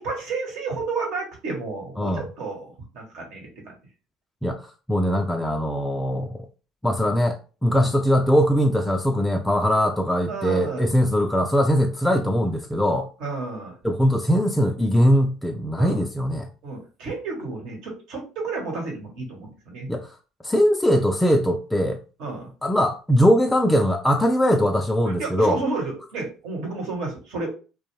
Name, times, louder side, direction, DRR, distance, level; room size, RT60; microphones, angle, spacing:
voice 1, 0.0-3.7 7.7-7.9 10.3-10.8 13.2-13.8 15.8-16.0 16.6-19.9 22.2-22.5 25.2-27.6, right 3 dB, 65° right, 1.1 m, -31 dB
voice 2, 4.4-6.4 6.8-13.1 13.8-16.5 19.9-20.1 20.4-22.0 22.6-25.6, equal, 5° left, 0.4 m, -21 dB
2.2 x 2.2 x 3.1 m
hypercardioid pair, 70°, 0 cm